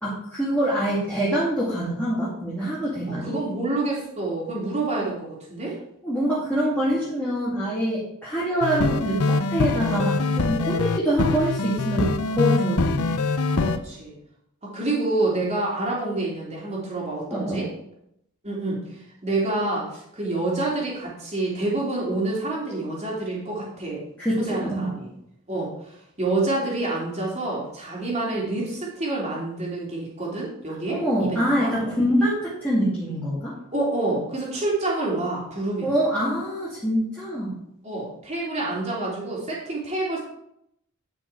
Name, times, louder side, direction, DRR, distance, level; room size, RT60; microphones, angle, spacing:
voice 1, 0.0-3.3 6.0-13.1 17.3-17.6 24.2-24.9 30.9-33.5 35.8-37.5, equal, 5° left, -9 dB, 2.4 m, -25 dB
voice 2, 3.1-5.8 13.5-14.1 14.6-17.7 18.4-24.0 24.4-25.1 25.5-31.7 33.7-35.9 37.8-40.2, right 2 dB, 30° right, -4 dB, 3.1 m, -28 dB
sound 1, 8.6-13.8, left 3 dB, 90° left, 0.7 m, -24 dB
10.5 x 6.2 x 4.7 m, 0.76 s
head